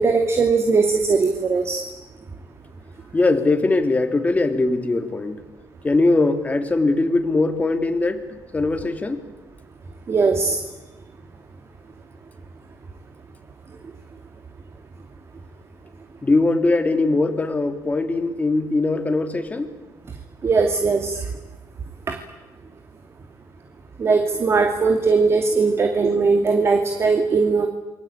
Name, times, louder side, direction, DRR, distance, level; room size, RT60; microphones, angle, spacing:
voice 1, 0.0-1.8 10.1-10.6 20.4-21.2 22.1-22.2 24.0-27.7, right 4 dB, 35° right, 5 dB, 2.6 m, -19 dB
voice 2, 3.1-5.4 5.8-8.2 8.5-9.2 16.2-19.7 25.7-25.9, left 2 dB, 20° left, 6 dB, 3.0 m, -21 dB
28.0 x 22.5 x 8.8 m, 1.1 s
cardioid pair, 110°, 7 cm